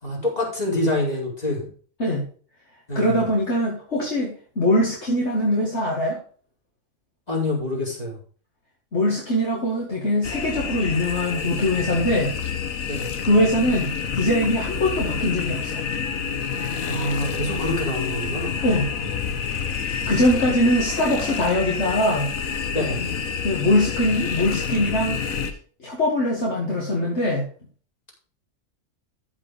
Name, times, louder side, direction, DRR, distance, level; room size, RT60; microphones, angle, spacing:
voice 1, 0.0-1.6 2.9-3.2 7.3-8.1 12.9-13.1 16.8-18.5 22.7-23.0, left 1 dB, 30° left, -2 dB, 4.9 m, -26 dB
voice 2, 2.9-6.2 8.9-12.3 13.2-15.8 18.6-18.9 20.1-22.3 23.4-25.2 25.8-27.5, left 1 dB, 55° left, -3 dB, 2.3 m, -22 dB
sound 1, 10.2-25.5, left 6 dB, 80° left, 1.5 m, -28 dB
14.0 x 4.8 x 5.1 m, 0.43 s
omnidirectional pair, 1.4 m